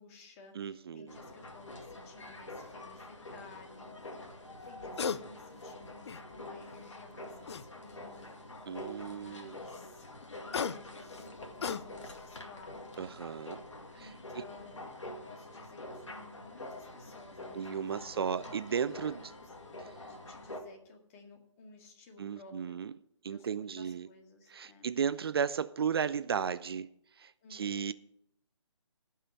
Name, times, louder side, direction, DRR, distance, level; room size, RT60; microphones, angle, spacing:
voice 1, 0.0-4.4 4.6-10.1 10.4-12.9 13.9-18.5 19.0-22.8 23.3-24.9 27.4-27.8, left 3 dB, 30° left, 2.0 m, -55 dB
voice 2, 0.6-1.1 8.7-9.6 13.0-13.6 13.9-14.1 17.5-19.2 22.2-22.9 23.2-24.1 24.5-26.9 27.2-27.9, right 7 dB, 55° right, 0.4 m, -34 dB
sound 1, 1.1-20.6, left 1 dB, 80° left, 2.1 m, -47 dB
sound 2, 1.8-2.0 4.7-5.2 5.7-6.5 7.5-8.1 10.2-12.3 12.7-13.0, left 6 dB, 60° left, 0.6 m, -37 dB
16.0 x 5.6 x 5.5 m
figure-of-eight pair, 145°, 16 cm